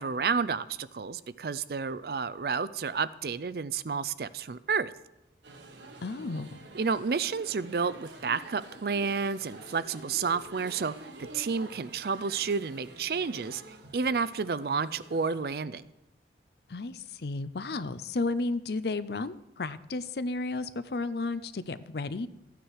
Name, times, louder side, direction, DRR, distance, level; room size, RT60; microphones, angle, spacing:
voice 1, 0.0-4.9 6.7-10.9 11.2-15.9, right 5 dB, 55° right, 16 dB, 0.5 m, -30 dB
sound 1, 5.4-15.4, right 2 dB, 85° right, 1.5 m, -48 dB
voice 2, 6.0-6.6 16.7-22.3, left 3 dB, 65° left, 15 dB, 0.6 m, -33 dB
15.0 x 9.2 x 4.8 m, 0.92 s
head